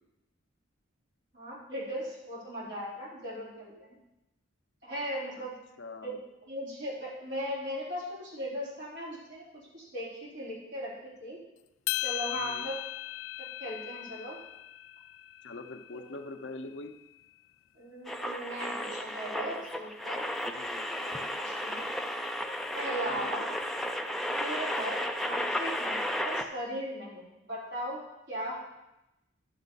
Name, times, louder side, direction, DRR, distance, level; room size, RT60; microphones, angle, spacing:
voice 1, 1.3-4.0 4.8-5.5 6.0-6.2 6.4-9.4 9.7-11.4 12.0-12.8 13.4-14.4 16.0-16.1 17.7-20.3 21.0-21.9 22.7-23.5 24.4-28.0 28.3-28.6, equal, 60° right, -7 dB, 4.2 m, -38 dB
voice 2, 5.8-6.1 12.3-12.7 15.4-16.9 20.5-21.0 23.1-23.4, left 2 dB, 60° left, 7 dB, 0.7 m, -43 dB
sound 1, 11.9-16.3, left 15 dB, 90° left, 0.3 m, -37 dB
sound 2, 18.1-26.4, left 1 dB, ahead, 0.4 m, -33 dB
12.0 x 7.2 x 4.0 m, 0.92 s
head